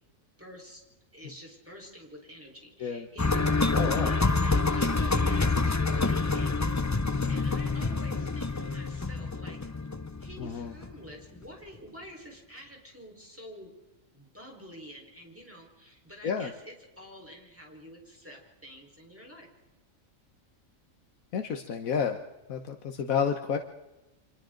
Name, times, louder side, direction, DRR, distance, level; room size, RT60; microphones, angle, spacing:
voice 1, 0.4-0.8 1.1-7.0 7.3-9.6 10.2-13.7 14.1-19.5, equal, 10° right, -1 dB, 4.4 m, -48 dB
sound 1, 3.2-11.1 11.4-11.5, left 3 dB, 25° left, 0.3 m, -27 dB
voice 2, 3.7-4.1 10.4-10.7 16.2-16.5 21.3-22.2 22.5-23.6, left 7 dB, 85° left, 6 dB, 1.5 m, -30 dB
30.0 x 25.5 x 3.9 m, 1.0 s
omnidirectional pair, 1.4 m